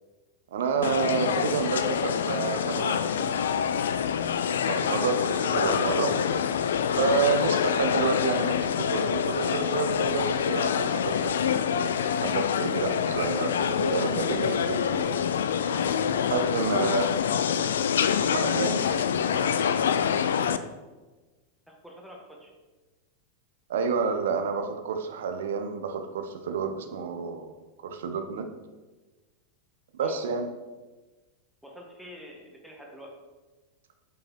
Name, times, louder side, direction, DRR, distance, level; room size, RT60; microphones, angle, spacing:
voice 1, 0.5-3.7 4.7-6.2 7.0-11.6 12.2-15.2 16.3-17.1 17.6-17.7 18.2-18.8 19.4-19.7 23.7-27.5 27.8-28.5 29.9-30.5, right 5 dB, 60° right, 7 dB, 0.8 m, -29 dB
sound 1, 0.8-20.6, left 8 dB, 65° left, 0.4 m, -26 dB
voice 2, 15.7-16.1 16.8-17.2 21.7-22.5 30.0-30.2 31.6-33.1, equal, ahead, -1 dB, 1.7 m, -45 dB
8.0 x 5.4 x 4.5 m, 1.2 s
figure-of-eight pair, 90°, 0 cm